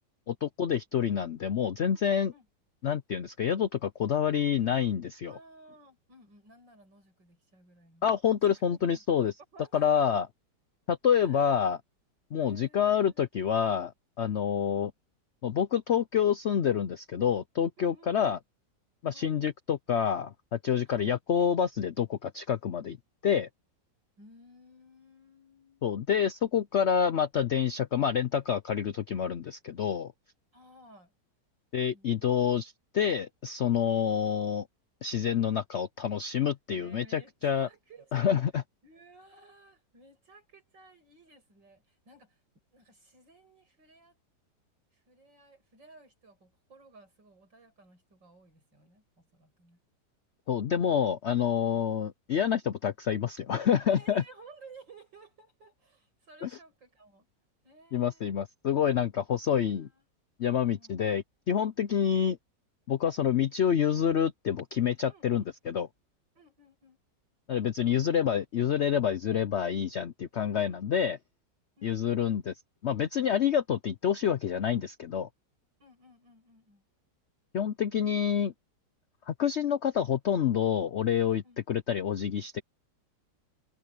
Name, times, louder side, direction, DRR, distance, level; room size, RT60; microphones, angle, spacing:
voice 1, 0.3-2.3 2.8-5.3 8.0-9.3 9.7-10.3 10.9-11.8 12.3-13.9 14.2-14.9 15.4-18.4 19.0-23.0 23.2-23.5 25.8-30.1 31.7-34.7 35.0-37.7 38.1-38.6 50.5-54.2 56.4-56.5 57.9-59.9 60.4-62.4 62.9-65.9 67.5-71.2 71.8-72.5 72.8-75.3 77.5-78.5 79.3-81.4 81.7-82.6, left 8 dB, 70° left, 0.6 m, -27 dB
voice 2, 5.3-8.1 8.4-9.0 9.5-10.3 11.1-11.5 12.4-13.3 14.4-14.9 17.8-18.4 19.1-19.3 20.9-21.1 24.2-25.9 30.5-31.1 31.9-32.6 33.9-34.2 36.7-38.3 38.8-42.4 42.7-44.2 44.9-49.8 51.7-51.8 53.9-57.3 57.6-58.3 59.7-60.0 60.6-61.1 61.9-62.2 65.1-65.5 66.4-67.0 70.4-70.9 71.8-72.3 75.8-76.8 81.4-81.6, right 2 dB, 80° right, 7.5 m, -56 dB
omnidirectional pair, 1.9 m